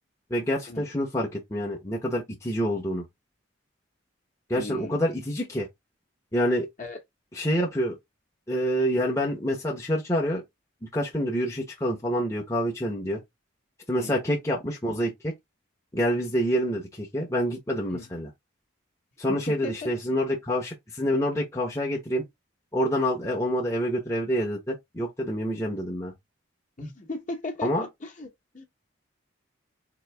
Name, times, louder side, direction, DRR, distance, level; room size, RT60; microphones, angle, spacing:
voice 1, 0.3-3.0 4.5-5.7 6.3-6.7 7.3-8.0 8.5-10.4 10.9-13.2 13.9-15.3 15.9-18.3 19.2-22.2 22.7-26.1 27.6-27.9, equal, 15° left, 0.8 m, -27 dB
voice 2, 4.5-5.0 6.8-7.0 13.9-14.2 17.9-18.1 19.3-19.9 26.8-28.6, left 2 dB, 40° left, 1.0 m, -37 dB
3.9 x 2.7 x 3.3 m
head